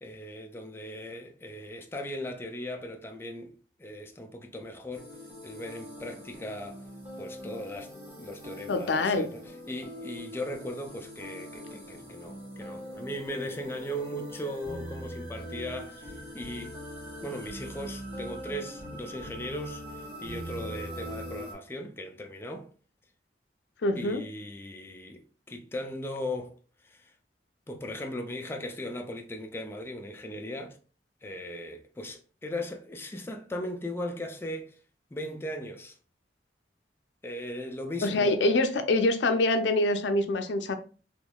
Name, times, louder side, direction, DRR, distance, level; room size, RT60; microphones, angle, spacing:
voice 1, 0.0-5.1 5.4-6.8 7.2-7.9 8.2-9.4 9.7-16.8 17.2-22.7 24.0-26.6 26.8-27.1 27.7-30.8 31.2-34.8 35.1-36.0 37.2-38.5, left 1 dB, 15° left, 0.4 m, -38 dB
sound 1, 4.9-21.5, equal, 15° right, 1.2 m, -42 dB
voice 2, 8.7-9.3 23.8-24.2 38.0-40.8, left 2 dB, 80° left, 0.5 m, -25 dB
3.6 x 3.0 x 2.2 m
head